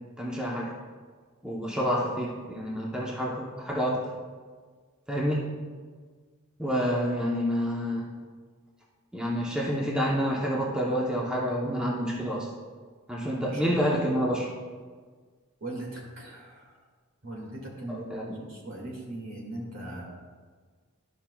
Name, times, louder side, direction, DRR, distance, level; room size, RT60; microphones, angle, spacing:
voice 1, 0.2-0.7 1.4-4.1 5.1-5.5 6.6-8.1 9.1-12.5 13.1-14.5 17.9-18.4, equal, 5° right, -4 dB, 0.7 m, -28 dB
voice 2, 13.2-13.6 15.6-16.8 17.2-20.1, right 1 dB, 60° right, -2 dB, 2.0 m, -39 dB
11.5 x 5.8 x 2.3 m, 1.5 s
head